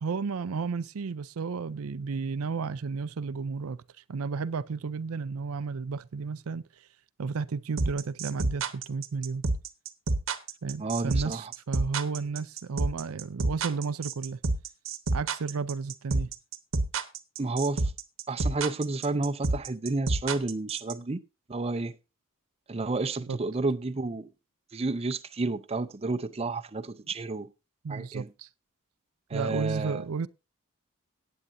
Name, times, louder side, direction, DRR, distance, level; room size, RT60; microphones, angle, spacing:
voice 1, 0.0-3.8 4.1-6.6 7.2-9.4 10.6-14.4 15.1-16.3 23.3-23.4 27.8-28.5 29.3-30.3, right 5 dB, 85° right, 0.5 m, -32 dB
sound 1, 7.8-20.9, right 3 dB, 65° right, 1.0 m, -28 dB
voice 2, 10.8-11.5 17.4-17.9 18.3-21.2 21.5-21.9 22.7-24.3 24.7-27.5 27.9-28.3 29.3-30.0, right 3 dB, 30° right, 0.6 m, -31 dB
18.0 x 8.7 x 2.6 m
head